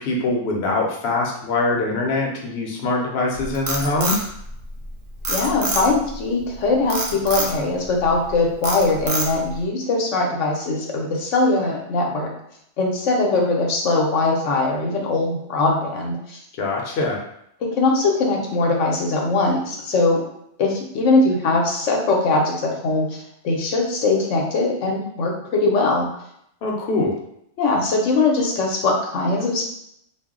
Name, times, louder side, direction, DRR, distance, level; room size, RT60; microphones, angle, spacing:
voice 1, 0.0-4.3 16.6-17.2 26.6-27.2, left 2 dB, 65° left, -1 dB, 0.8 m, -23 dB
Frog, 3.3-4.9 5.2-6.1 6.9-7.5 8.0-8.3 8.6-9.6, right 2 dB, 55° right, 0.7 m, -25 dB
voice 2, 5.3-12.3 12.8-16.4 17.7-20.2 20.6-26.1 27.6-29.7, left 3 dB, 85° left, 0 dB, 1.0 m, -21 dB
2.3 x 2.0 x 3.6 m, 0.74 s
omnidirectional pair, 1.2 m